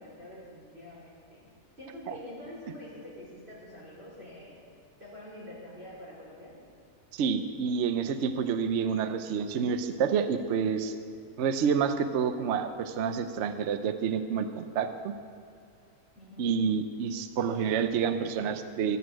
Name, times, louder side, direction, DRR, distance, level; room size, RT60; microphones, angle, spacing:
voice 1, 0.0-1.5 1.8-4.6 5.0-6.5 16.2-16.5, left 1 dB, 45° right, -8 dB, 4.4 m, -46 dB
voice 2, 7.1-11.0 11.4-15.1 16.4-19.0, right 6 dB, 60° right, 9 dB, 0.9 m, -28 dB
14.0 x 8.3 x 6.2 m, 2.4 s
omnidirectional pair, 1.4 m